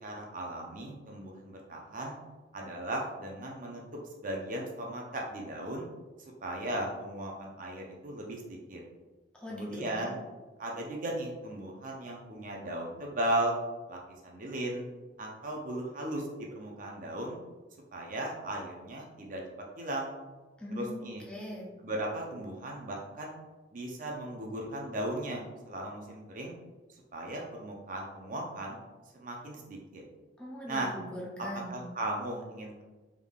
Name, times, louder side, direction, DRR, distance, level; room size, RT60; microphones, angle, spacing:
voice 1, 0.0-2.2 2.5-3.8 4.2-5.9 6.4-8.8 9.5-10.2 10.6-13.5 13.9-14.9 15.2-17.4 17.9-19.4 19.8-20.1 20.7-21.2 21.8-23.4 23.7-26.5 27.1-28.8 29.1-30.0 30.7-30.9 31.7-32.8, right 1 dB, 45° right, 0 dB, 0.5 m, -36 dB
voice 2, 9.3-10.1 20.6-21.0 21.3-21.7 30.4-31.7, equal, 5° left, -5 dB, 0.6 m, -40 dB
3.5 x 3.4 x 2.3 m, 1.2 s
head